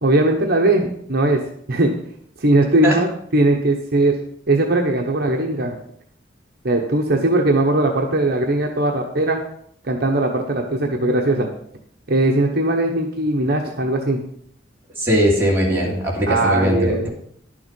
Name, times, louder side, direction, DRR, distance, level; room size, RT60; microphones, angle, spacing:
voice 1, 0.0-1.4 1.7-1.9 2.4-4.2 4.5-5.8 6.6-9.4 9.8-11.5 12.1-14.2 16.3-17.1, right 2 dB, 55° right, 1 dB, 1.1 m, -19 dB
voice 2, 15.0-17.1, equal, 15° right, -5 dB, 3.0 m, -19 dB
11.0 x 7.0 x 5.3 m, 0.66 s
head